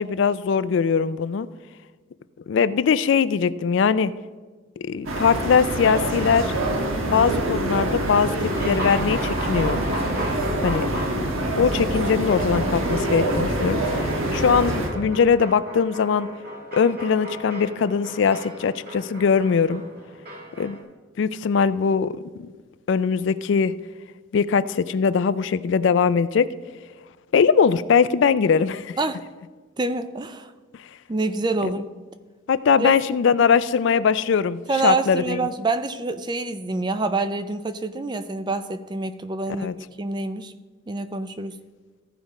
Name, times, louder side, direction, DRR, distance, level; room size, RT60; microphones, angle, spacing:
voice 1, 0.0-1.5 2.5-4.1 4.8-6.5 7.1-9.8 10.6-10.9 11.6-16.3 16.7-19.8 20.6-20.8 21.2-22.1 22.4-22.5 22.9-23.7 24.3-26.5 27.3-29.0 31.6-31.7 32.5-35.4 39.6-39.7, left 6 dB, 60° left, 15 dB, 0.3 m, -21 dB
sound 1, 5.1-14.9, right 1 dB, 85° right, 1.4 m, -25 dB
sound 2, 8.5-20.8, equal, 45° right, 1.9 m, -35 dB
voice 2, 29.8-30.5 31.1-31.9 32.8-33.0 34.7-39.7 40.0-40.5 40.9-41.6, right 3 dB, 20° right, 10 dB, 0.4 m, -26 dB
14.5 x 5.1 x 4.0 m, 1.4 s
head